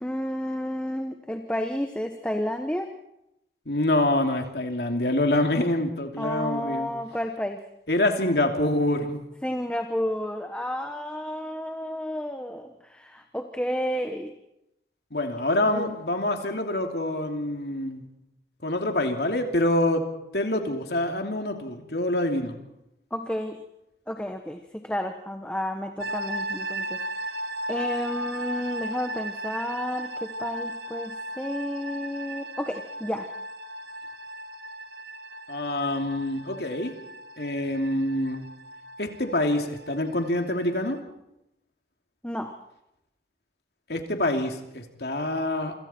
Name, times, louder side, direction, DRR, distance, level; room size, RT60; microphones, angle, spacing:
voice 1, 0.0-2.9 6.2-7.6 9.4-14.3 15.6-15.9 23.1-23.6 24.1-27.0 27.7-33.3 42.2-42.5, equal, 5° left, 5 dB, 1.1 m, -31 dB
voice 2, 3.7-6.9 7.9-9.2 15.1-18.1 18.6-20.0 20.3-22.6 35.5-36.9 37.4-38.4 39.0-41.0 43.9-45.7, left 1 dB, 65° left, 4 dB, 2.9 m, -26 dB
sound 1, 26.0-41.0, right 1 dB, 60° right, 1.4 m, -36 dB
27.5 x 26.0 x 4.5 m, 0.86 s
head